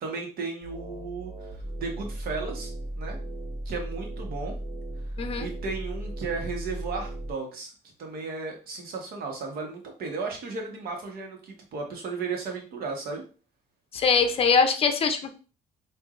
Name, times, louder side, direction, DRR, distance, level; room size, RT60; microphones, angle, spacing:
voice 1, 0.0-2.7 3.0-3.2 3.6-4.5 5.4-7.7 8.0-13.2, right 4 dB, 65° right, 2 dB, 1.3 m, -35 dB
sound 1, 0.6-7.3, right 1 dB, 45° right, 1.9 m, -36 dB
voice 2, 13.9-15.3, left 5 dB, 35° left, 8 dB, 0.6 m, -22 dB
4.6 x 2.6 x 2.5 m, 0.36 s
cardioid pair, 110°, 17 cm